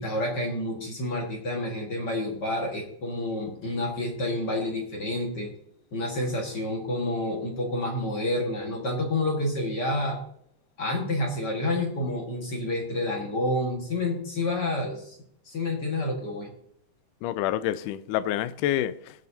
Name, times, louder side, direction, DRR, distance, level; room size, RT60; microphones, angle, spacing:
voice 1, 0.0-5.5 5.9-10.2 10.8-15.2 15.5-16.5, left 1 dB, 40° left, 1.9 m, -29 dB
voice 2, 17.2-19.3, left 12 dB, 85° left, 2.1 m, -28 dB
17.0 x 7.4 x 2.8 m
omnidirectional pair, 3.7 m